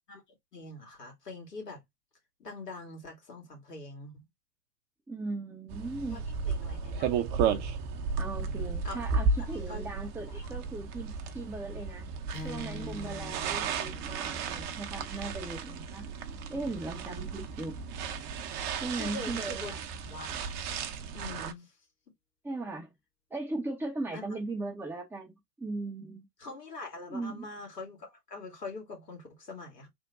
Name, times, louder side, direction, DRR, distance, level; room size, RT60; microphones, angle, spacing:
voice 1, 0.5-1.8 2.4-4.2 6.1-7.4 8.8-9.0 9.4-9.8 10.2-10.3 19.0-19.7 20.1-20.4 21.1-21.7 24.1-24.4 26.4-29.9, left 3 dB, 80° left, 2.0 m, -44 dB
voice 2, 5.1-6.2 8.2-12.1 12.4-16.1 16.5-17.7 18.8-19.8 22.4-22.9 23.3-26.2 27.1-27.5, right 2 dB, 5° right, 0.6 m, -38 dB
sound 1, 5.7-21.5, right 5 dB, 40° right, 0.8 m, -34 dB
Strum, 12.3-16.7, left 3 dB, 55° left, 1.4 m, -47 dB
3.5 x 2.2 x 4.0 m
figure-of-eight pair, 95°, 47 cm